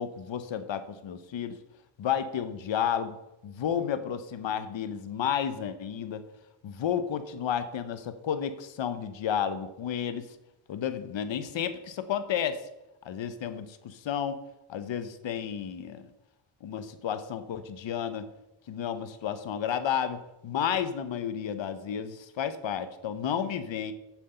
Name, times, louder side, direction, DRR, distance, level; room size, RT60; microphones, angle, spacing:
voice 1, 0.0-1.6 2.0-3.2 3.4-6.2 6.6-10.3 10.7-12.7 13.0-14.4 14.7-16.1 16.6-18.3 18.7-23.9, left 8 dB, 65° left, 11 dB, 1.1 m, -32 dB
7.5 x 7.4 x 5.7 m, 0.94 s
cardioid pair, 85°, 49 cm